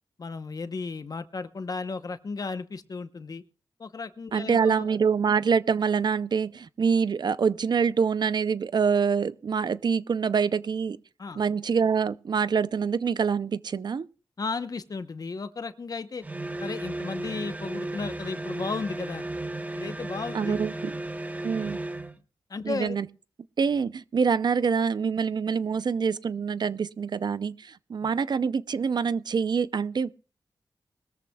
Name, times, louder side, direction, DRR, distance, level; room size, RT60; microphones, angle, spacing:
voice 1, 0.2-3.4 3.8-5.0 11.2-11.4 14.4-16.2 16.6-19.3 19.7-20.6 22.5-23.0 28.0-28.1, left 4 dB, 50° left, 0.9 m, -34 dB
voice 2, 4.3-11.0 11.4-14.1 20.3-20.9 21.4-21.8 22.6-23.1 23.6-30.1, right 6 dB, 60° right, 0.5 m, -25 dB
sound 1, 16.2-22.2, right 2 dB, 20° right, 0.9 m, -35 dB
21.0 x 14.0 x 2.3 m
wide cardioid pair, 90°, 8 cm